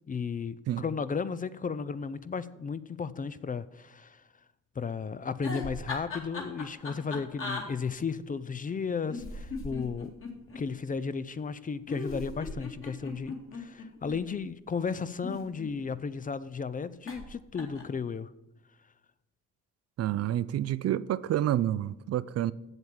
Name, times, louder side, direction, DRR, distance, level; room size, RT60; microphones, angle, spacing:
voice 1, 0.1-4.2 4.8-10.1 10.5-18.3, left 5 dB, 30° left, 0.5 m, -34 dB
sound 1, 5.4-7.6 9.1-10.6 11.9-14.2 15.0-16.0 17.1-17.3 17.5-18.0, left 3 dB, 45° left, 2.3 m, -38 dB
voice 2, 20.0-22.5, right 12 dB, 55° right, 0.4 m, -28 dB
7.9 x 7.1 x 7.4 m
cardioid pair, 90°, 30 cm